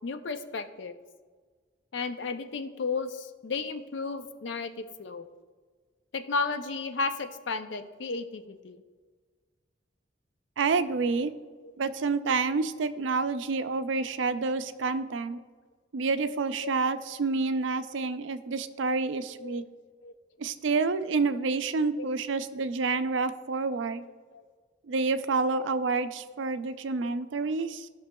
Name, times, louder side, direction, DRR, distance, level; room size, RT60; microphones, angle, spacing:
voice 1, 0.0-0.9 1.9-5.3 6.1-8.8 16.6-16.7 17.9-18.2 19.4-19.6 20.0-20.1 22.0-22.1 23.7-23.8 24.3-24.4 25.5-26.0, left 4 dB, 75° left, 9 dB, 0.5 m, -34 dB
voice 2, 10.6-11.3 11.8-15.4 15.9-19.6 20.4-24.0 24.9-27.9, right 4 dB, 85° right, 11 dB, 0.5 m, -28 dB
14.0 x 6.0 x 2.3 m, 1.5 s
head